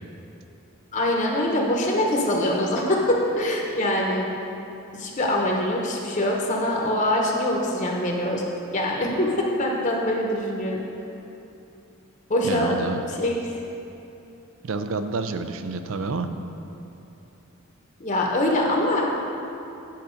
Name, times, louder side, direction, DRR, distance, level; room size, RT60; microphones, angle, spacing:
voice 1, 0.9-4.3 4.9-8.4 8.7-10.8 12.3-12.8 13.2-13.4 18.0-19.0, left 1 dB, 35° left, -1 dB, 0.9 m, -23 dB
voice 2, 12.4-13.0 14.6-16.3, right 4 dB, 65° right, 9 dB, 0.5 m, -28 dB
9.2 x 5.8 x 5.1 m, 2.8 s
head